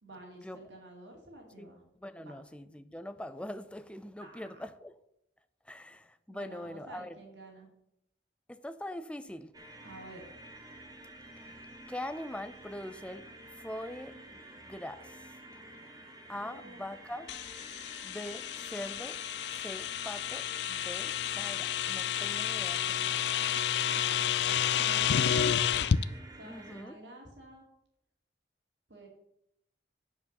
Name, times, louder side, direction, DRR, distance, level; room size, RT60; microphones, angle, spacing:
voice 1, 0.0-1.8 2.2-2.4 4.2-4.5 5.7-5.9 6.3-7.7 9.8-10.2 16.4-16.8 23.8-25.5 26.3-27.6 28.9-29.1, right 1 dB, 80° right, 0 dB, 2.5 m, -51 dB
voice 2, 2.0-4.9 5.7-7.2 8.5-9.5 11.4-11.6 11.9-13.3 13.6-14.4 14.7-15.2 16.3-17.3 18.0-19.2 19.5-23.2 26.4-27.0, left 1 dB, 5° left, 11 dB, 0.5 m, -42 dB
sound 1, 9.5-26.8, right 1 dB, 20° right, 1.4 m, -50 dB
sound 2, 17.3-26.0, left 9 dB, 65° left, 0.4 m, -30 dB
9.2 x 5.0 x 6.6 m, 0.79 s
head